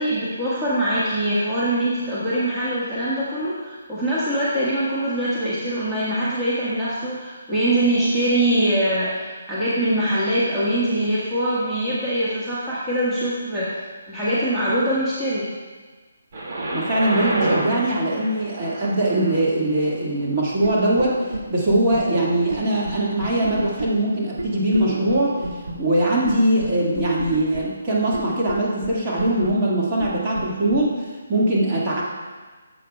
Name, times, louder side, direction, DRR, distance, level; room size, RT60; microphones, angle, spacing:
voice 1, 0.0-13.7 14.1-15.5, right 1 dB, 10° right, -12 dB, 1.5 m, -23 dB
Thunder, 16.3-28.2 28.9-29.0, right 1 dB, 50° right, 2.1 m, -32 dB
voice 2, 16.7-21.2 21.5-25.4 25.8-30.9 31.3-32.0, right 1 dB, 25° right, -6 dB, 1.8 m, -21 dB
sound 1, 20.6-20.7 21.0-21.1 21.3-21.4 21.7-22.0 22.5-22.6 22.9-23.0 23.2-23.9 24.4-24.5 24.7-24.8 25.1-25.2 25.4-25.7 26.3-26.4 26.6-26.7 27.0-27.6 28.1-28.2 28.5-28.6 28.8-28.9 29.2-29.5 30.0-30.1 30.4-30.5 30.7-30.8, right 2 dB, 85° right, 1.3 m, -28 dB
10.0 x 7.4 x 2.3 m, 1.4 s
hypercardioid pair, 160°, 0 cm